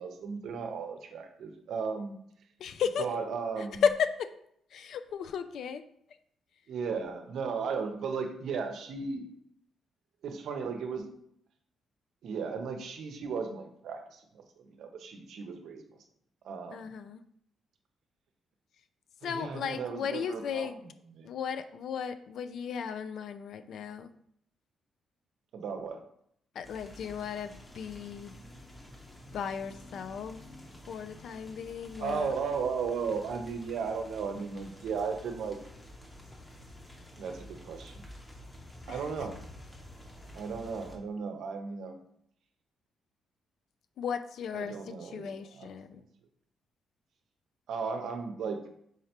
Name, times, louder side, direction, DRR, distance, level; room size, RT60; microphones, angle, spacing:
voice 1, 0.0-2.2 3.0-3.8 6.7-9.3 10.2-11.1 12.2-15.8 16.4-16.8 19.2-20.7 21.2-21.3 25.5-26.0 32.0-35.6 37.2-38.0 38.9-39.4 40.3-42.0 44.5-45.3 45.6-45.7 47.7-48.6, right 5 dB, 75° right, 5 dB, 0.6 m, -35 dB
voice 2, 2.6-3.1 3.6-4.3 4.7-5.8 16.7-17.2 19.2-20.8 21.2-24.1 26.6-28.4 29.3-30.4 30.9-32.3 38.9-39.0 44.0-44.7 45.0-46.0, left 7 dB, 70° left, 10 dB, 0.3 m, -34 dB
sound 1, 26.6-41.0, left 1 dB, 15° left, 0.9 m, -50 dB
4.8 x 3.2 x 2.8 m, 0.69 s
cardioid pair, 100°, 0 cm